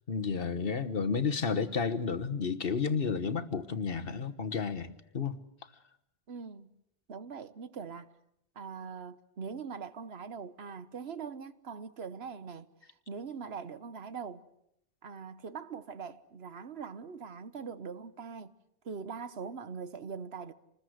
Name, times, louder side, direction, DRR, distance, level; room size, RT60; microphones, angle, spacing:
voice 1, 0.1-5.4, left 5 dB, 65° left, 1.5 m, -31 dB
voice 2, 6.3-6.8 7.1-8.1 8.5-14.5 15.0-18.5 18.8-20.5, right 6 dB, 85° right, 1.4 m, -42 dB
26.5 x 20.5 x 8.0 m
omnidirectional pair, 1.0 m